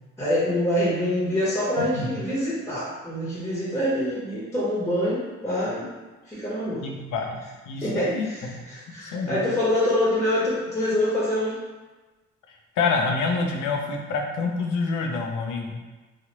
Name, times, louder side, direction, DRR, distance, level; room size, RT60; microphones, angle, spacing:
voice 1, 0.2-5.9 6.3-6.9 7.8-11.6, left 1 dB, 10° left, -7 dB, 1.0 m, -25 dB
voice 2, 1.8-2.1 6.8-7.4 7.7-8.3 8.5-8.6 9.0-9.4 12.8-15.8, left 4 dB, 80° left, 2 dB, 0.6 m, -27 dB
3.2 x 2.4 x 2.9 m, 1.2 s
cardioid pair, 90°, 30 cm